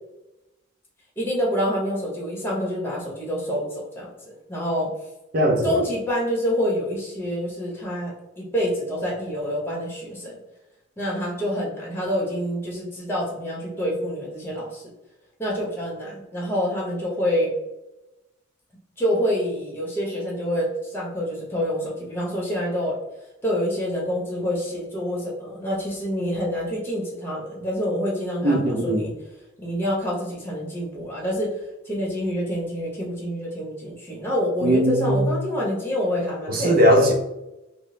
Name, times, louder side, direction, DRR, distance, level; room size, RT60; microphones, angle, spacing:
voice 1, 1.2-4.9 5.6-10.4 11.0-14.9 15.4-17.5 19.0-23.0 23.4-29.1 29.6-31.5 31.8-37.1, equal, 10° left, -3 dB, 0.9 m, -27 dB
voice 2, 5.3-5.8 28.4-29.0 34.6-35.3 36.5-37.1, equal, 45° right, 1 dB, 0.5 m, -19 dB
3.7 x 2.0 x 3.8 m, 0.95 s
head